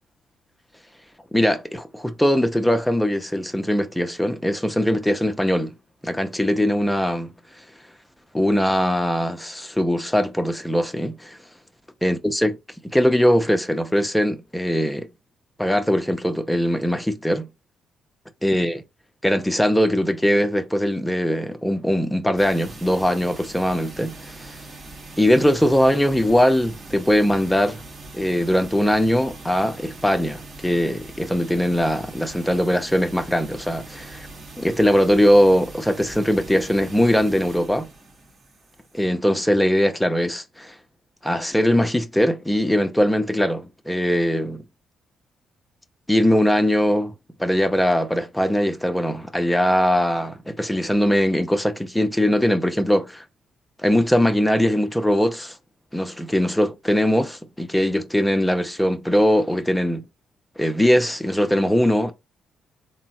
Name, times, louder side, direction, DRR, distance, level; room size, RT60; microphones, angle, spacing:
voice 1, 1.3-5.7 6.0-7.3 8.3-11.4 12.0-12.6 12.9-15.1 15.6-17.5 18.4-18.8 19.2-24.6 25.2-27.8 28.1-34.3 34.6-37.9 38.9-40.8 41.2-44.6 46.1-47.1 47.4-53.2 53.8-55.6 55.9-60.0 60.6-62.1, equal, 5° left, 0.6 m, -21 dB
sound 1, 22.4-39.0, right 2 dB, 40° right, 1.0 m, -41 dB
3.6 x 2.1 x 4.1 m
cardioid pair, 90°, 0 cm